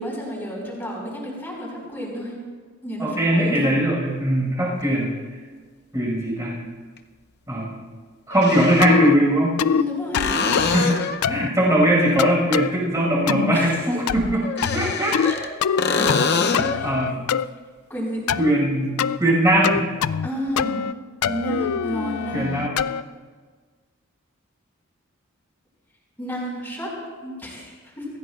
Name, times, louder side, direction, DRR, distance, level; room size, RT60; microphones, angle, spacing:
voice 1, 0.0-2.3 2.8-3.6 9.6-10.7 13.5-14.0 15.2-15.4 15.9-16.9 17.9-18.3 20.2-20.8 21.2-22.5 26.2-26.9 27.2-28.1, equal, 10° left, -5 dB, 5.3 m, -31 dB
voice 2, 3.0-5.1 5.9-6.6 7.5-7.8 8.3-9.5 10.6-11.0 11.3-14.4 14.7-15.1 15.9-16.5 16.8-17.2 18.4-18.9 19.2-19.8 22.3-22.9, right 1 dB, 15° right, -5 dB, 5.6 m, -20 dB
sound 1, 4.8-4.9 7.0-7.1 8.3-9.1 10.1-11.3 14.4-15.5 15.8-16.8 20.5-20.6, left 5 dB, 50° left, 0.7 m, -24 dB
sound 2, 8.8-9.2 9.6-9.8 10.1-10.8 11.2-11.5 12.2-12.7 13.3-13.6 14.1-14.4 14.6-15.3 15.6-16.3 16.5-17.4 18.3-18.5 19.0-19.2 19.6-20.3 20.6-20.9 21.2-23.0, left 7 dB, 90° left, 0.4 m, -24 dB
24.5 x 15.5 x 2.5 m, 1.5 s
head